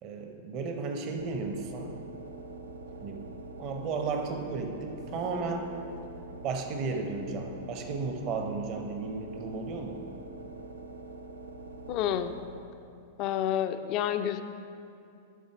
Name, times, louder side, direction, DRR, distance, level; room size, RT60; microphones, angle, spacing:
voice 1, 0.0-2.0 3.0-3.3 3.6-5.7 6.4-10.1, right 4 dB, 40° right, 4 dB, 0.8 m, -34 dB
sound 1, 1.2-12.9, right 2 dB, 70° right, 0.4 m, -44 dB
voice 2, 11.9-12.3 13.2-14.4, left 10 dB, 40° left, 9 dB, 0.4 m, -29 dB
12.0 x 4.1 x 4.8 m, 2.6 s
figure-of-eight pair, 95°, 0 cm